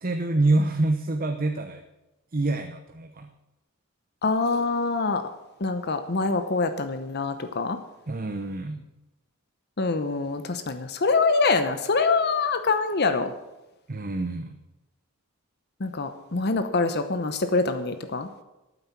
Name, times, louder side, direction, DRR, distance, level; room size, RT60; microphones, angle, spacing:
voice 1, 0.0-1.8 2.3-3.3 8.1-8.8 13.9-14.6, right 2 dB, 45° right, 6 dB, 0.9 m, -26 dB
voice 2, 4.2-5.2 5.6-7.8 9.8-13.3 15.8-18.3, left 3 dB, 55° left, 9 dB, 0.9 m, -25 dB
12.5 x 9.3 x 7.3 m, 1.0 s
head